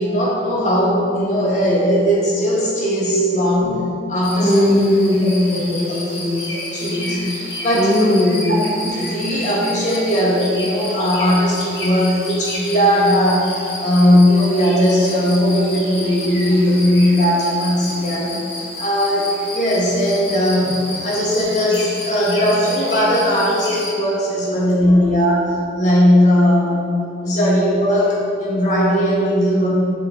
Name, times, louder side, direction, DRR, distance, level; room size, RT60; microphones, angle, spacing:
voice 1, 0.0-3.8 4.1-4.7 5.5-6.0 6.7-7.2 7.6-7.9 8.5-18.3 18.8-20.8 21.0-26.9 27.2-29.7, equal, 40° left, -5 dB, 1.4 m, -18 dB
sound 1, 4.2-23.9, left 1 dB, 65° left, 1.2 m, -31 dB
voice 2, 4.4-6.5 7.7-8.6, left 1 dB, 10° left, -6 dB, 0.5 m, -18 dB
6.7 x 3.7 x 4.5 m, 2.5 s
head